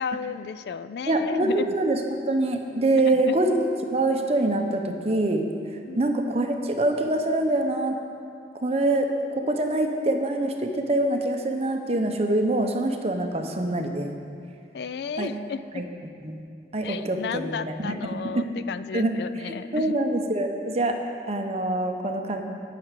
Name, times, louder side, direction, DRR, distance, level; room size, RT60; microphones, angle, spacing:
voice 1, 0.0-1.7 2.9-3.4 5.9-6.2 14.7-15.8 16.8-19.9, left 6 dB, 65° left, 13 dB, 0.3 m, -33 dB
voice 2, 1.1-3.5 3.9-5.5 6.0-8.0 8.6-14.1 15.2-15.3 15.7-15.9 16.2-16.4 16.7-18.1 18.9-19.1 19.4-21.0 21.3-22.4, right 2 dB, 35° right, 4 dB, 0.8 m, -25 dB
9.3 x 5.9 x 8.2 m, 2.4 s
head